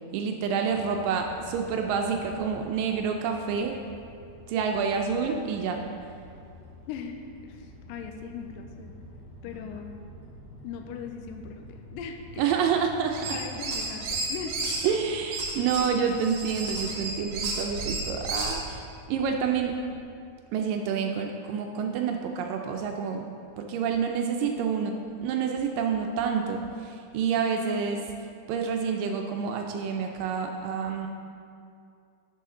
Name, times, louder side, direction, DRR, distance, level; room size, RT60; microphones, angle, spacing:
voice 1, 0.1-3.8 4.5-5.8 12.4-13.4 14.8-18.8 19.1-19.8 20.5-23.2 23.6-24.9 25.2-28.0 28.5-31.1, right 6 dB, 80° right, 3 dB, 2.0 m, -28 dB
sound 1, 0.7-20.0, equal, 50° left, 2.7 m, -48 dB
voice 2, 6.9-8.9 9.4-10.0 10.6-12.7 13.3-14.6, left 6 dB, 80° left, 4 dB, 2.1 m, -39 dB
sound 2, 13.1-14.9 15.3-18.6, right 3 dB, 60° right, 1.7 m, -32 dB
12.0 x 5.6 x 3.7 m, 2.4 s
omnidirectional pair, 4.3 m